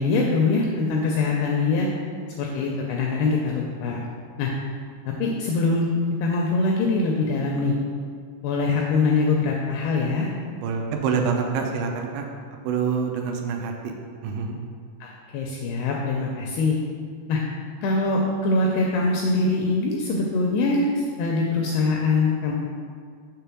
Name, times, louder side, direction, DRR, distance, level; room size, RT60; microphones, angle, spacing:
voice 1, 0.0-1.9 2.4-4.0 4.4-4.5 5.1-5.9 6.2-7.8 8.4-10.3 15.0-16.8 17.3-17.4 17.8-22.5, left 3 dB, 85° left, -1 dB, 2.3 m, -23 dB
voice 2, 10.6-13.9 14.2-14.6, right 5 dB, 85° right, 2 dB, 2.8 m, -26 dB
6.6 x 3.5 x 5.9 m, 2.1 s
omnidirectional pair, 5.1 m